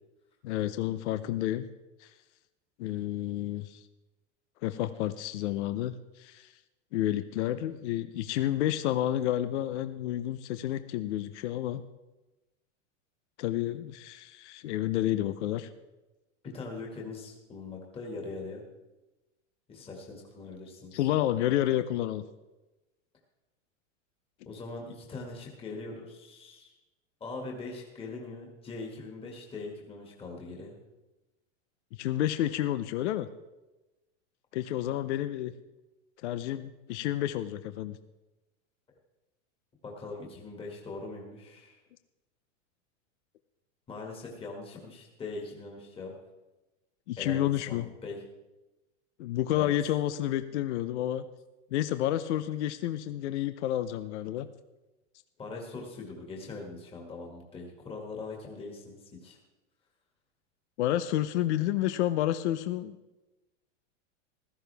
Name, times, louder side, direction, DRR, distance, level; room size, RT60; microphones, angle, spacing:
voice 1, 0.4-1.7 2.0-2.1 2.8-3.8 4.6-6.5 6.9-11.8 13.4-15.7 20.9-22.2 32.0-33.3 34.5-35.5 36.2-38.0 47.1-47.9 49.2-51.3 51.7-54.5 60.8-63.0, left 13 dB, 65° left, 12 dB, 0.8 m, -30 dB
voice 2, 16.4-18.6 19.7-21.1 24.4-26.7 27.2-30.8 39.8-41.8 43.9-46.1 47.2-48.2 49.5-49.7 55.4-59.4, left 3 dB, 15° left, -1 dB, 2.0 m, -41 dB
15.5 x 14.0 x 3.4 m, 1.1 s
supercardioid pair, 160°, 38 cm